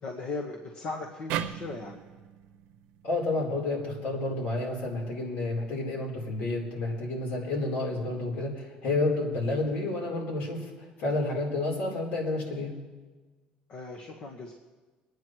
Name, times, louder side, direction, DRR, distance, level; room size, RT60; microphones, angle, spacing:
voice 1, 0.0-2.0 13.7-14.5, left 3 dB, 50° left, 1 dB, 1.3 m, -38 dB
sound 1, 1.3-4.5, right 11 dB, 85° right, 0.7 m, -38 dB
voice 2, 3.0-12.7, left 2 dB, 70° left, -1 dB, 3.9 m, -30 dB
27.0 x 9.4 x 3.1 m, 1.3 s
cardioid pair, 145°, 3 cm